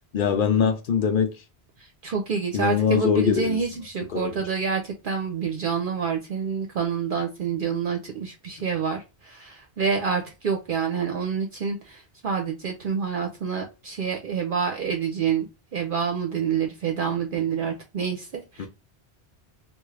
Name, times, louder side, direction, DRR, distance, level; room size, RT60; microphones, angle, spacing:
voice 1, 0.1-1.3 2.5-3.6 4.1-4.4 18.6-18.7, left 7 dB, 60° left, 0.8 m, -22 dB
voice 2, 1.8-18.7, right 6 dB, 60° right, 0.8 m, -28 dB
3.5 x 2.4 x 3.2 m
omnidirectional pair, 1.0 m